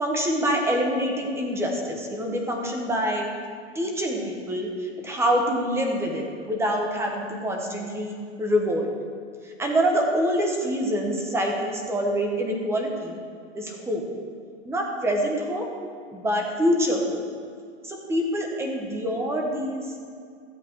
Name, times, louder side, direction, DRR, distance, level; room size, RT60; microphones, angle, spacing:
voice 1, 0.0-3.3 3.7-8.9 9.4-13.2 13.5-14.0 14.6-15.7 16.1-17.2 17.8-19.8, equal, 5° right, 1 dB, 1.3 m, -26 dB
14.0 x 7.9 x 4.7 m, 2.2 s
hypercardioid pair, 150°, 36 cm